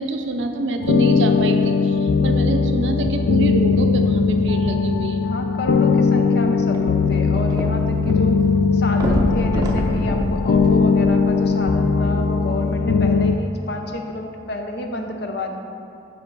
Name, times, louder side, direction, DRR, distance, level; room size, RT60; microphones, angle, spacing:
voice 1, 0.0-5.3, right 2 dB, 75° right, 5 dB, 0.6 m, -25 dB
sound 1, 0.8-13.3, left 4 dB, 80° left, 0.3 m, -19 dB
voice 2, 5.2-8.4 8.7-15.6, left 2 dB, 60° left, 4 dB, 0.7 m, -29 dB
sound 2, 6.7-8.1 8.4-8.5 8.9-11.5 12.2-12.3, equal, 20° right, 0.5 m, -25 dB
6.8 x 5.2 x 4.6 m, 2.7 s
head